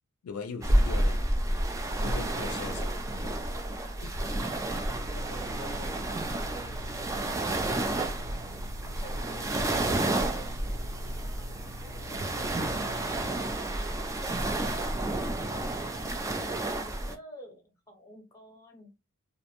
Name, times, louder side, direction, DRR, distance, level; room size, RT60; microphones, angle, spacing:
voice 1, 0.2-1.2 2.0-2.8 3.1-3.4 4.0-4.1, left 5 dB, 75° left, 0.4 m, -39 dB
sound 1, 0.6-17.1, right 1 dB, 15° right, 0.3 m, -30 dB
voice 2, 2.4-3.1 3.5-6.9 8.2-10.8 11.2-13.8 15.8-18.9, equal, 15° left, 0.9 m, -50 dB
sound 2, 4.9-13.5, equal, 80° right, 1.1 m, -45 dB
2.5 x 2.1 x 2.9 m
head